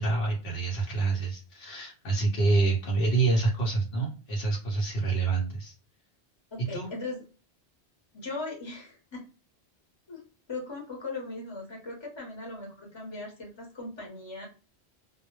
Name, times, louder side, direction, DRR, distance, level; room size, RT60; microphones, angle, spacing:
voice 1, 0.0-5.7 6.7-6.9, right 3 dB, 70° left, -2 dB, 0.9 m, -27 dB
voice 2, 6.5-7.2 8.1-9.3 10.1-14.5, left 3 dB, 25° left, -1 dB, 0.9 m, -39 dB
2.1 x 2.1 x 2.8 m, 0.35 s
omnidirectional pair, 1.1 m